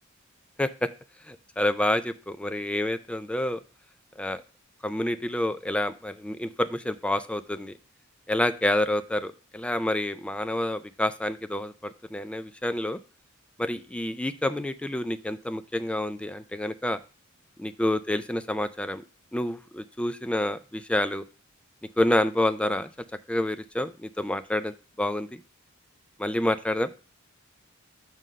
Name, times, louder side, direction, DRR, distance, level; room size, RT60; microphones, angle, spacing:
voice 1, 1.3-3.6 4.2-4.4 4.8-7.7 8.3-13.0 13.6-17.0 17.6-19.0 19.3-21.2 22.0-22.9 23.3-25.4 26.2-27.0, left 1 dB, 5° left, 12 dB, 0.3 m, -28 dB
6.3 x 3.8 x 5.3 m, 0.35 s
head